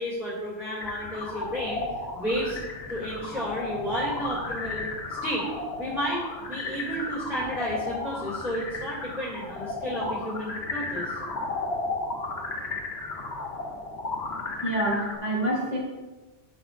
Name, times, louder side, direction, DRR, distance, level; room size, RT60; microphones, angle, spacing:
voice 1, 0.0-1.8 2.1-2.6 2.9-4.9 5.2-5.5 5.8-11.2, equal, ahead, -9 dB, 2.2 m, -32 dB
sound 1, 0.8-15.2, left 2 dB, 60° left, 1.2 m, -34 dB
voice 2, 14.6-15.8, right 1 dB, 90° right, -2 dB, 2.4 m, -27 dB
11.5 x 6.8 x 2.5 m, 1.2 s
omnidirectional pair, 1.2 m